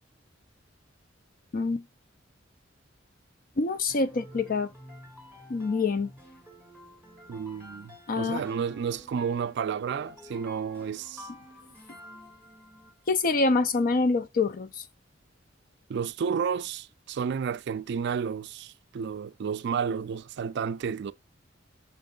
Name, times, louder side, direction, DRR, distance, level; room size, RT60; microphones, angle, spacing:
voice 1, 1.5-1.8 3.6-4.7 5.5-6.1 8.1-8.4 13.1-14.8, left 3 dB, 50° left, 0.5 m, -26 dB
sound 1, 3.9-13.1, left 1 dB, 10° left, 3.5 m, -50 dB
voice 2, 7.3-11.3 15.9-21.1, right 6 dB, 60° right, 0.3 m, -31 dB
5.9 x 4.6 x 3.8 m
head